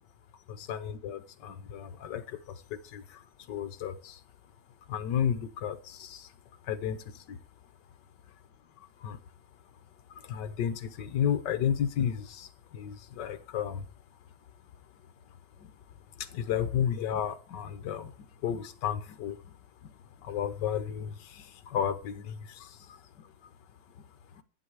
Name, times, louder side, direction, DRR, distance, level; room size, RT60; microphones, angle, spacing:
voice 1, 0.5-3.2 3.5-4.2 4.9-6.3 6.6-7.4 8.8-9.2 10.2-13.9 15.6-15.7 16.2-19.6 19.8-19.9 20.2-23.3 24.3-24.4, left 8 dB, 65° left, 11 dB, 1.6 m, -33 dB
11.0 x 8.9 x 4.8 m, 0.39 s
omnidirectional pair, 2.1 m